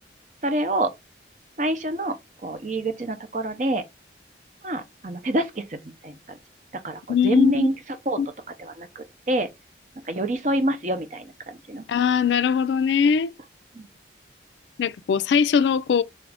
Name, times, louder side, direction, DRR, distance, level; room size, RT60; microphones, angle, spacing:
voice 1, 0.4-0.9 1.6-2.2 2.4-3.8 4.6-6.4 6.8-7.8 8.1-8.2 8.6-9.5 10.1-11.8 13.8-13.9, right 1 dB, 40° right, 0.6 m, -26 dB
voice 2, 7.1-7.7 8.2-8.3 11.9-13.3 14.8-16.0, left 6 dB, 80° left, 0.3 m, -21 dB
3.9 x 2.5 x 3.3 m
head